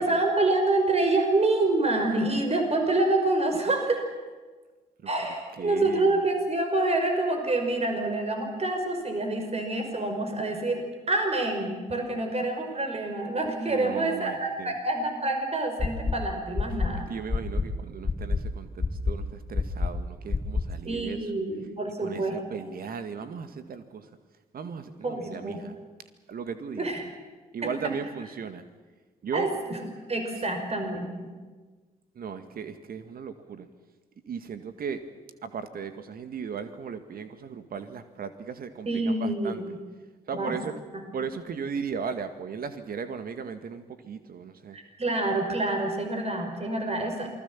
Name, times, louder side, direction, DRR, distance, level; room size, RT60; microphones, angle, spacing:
voice 1, 0.0-4.1 5.1-10.8 11.1-17.1 20.9-22.4 25.0-25.6 26.8-27.0 27.6-27.7 29.3-31.3 38.9-39.8 40.3-40.6 41.0-41.1 44.7-47.3, right 2 dB, 35° right, 4 dB, 5.5 m, -27 dB
voice 2, 5.6-6.2 13.7-14.7 17.1-21.3 22.0-24.1 24.5-25.8 26.3-26.9 27.5-28.6 29.2-29.5 32.1-33.7 34.3-35.0 35.4-39.6 40.3-40.7 41.1-44.8, right 6 dB, 50° right, 10 dB, 2.0 m, -36 dB
sound 1, 15.8-16.1 16.5-16.9 17.3-17.7 18.0-18.4 18.8-19.1 19.5-19.9 20.3-20.6, left 4 dB, 30° left, 3.2 m, -25 dB
28.0 x 20.5 x 7.4 m, 1.3 s
figure-of-eight pair, 40°, 19 cm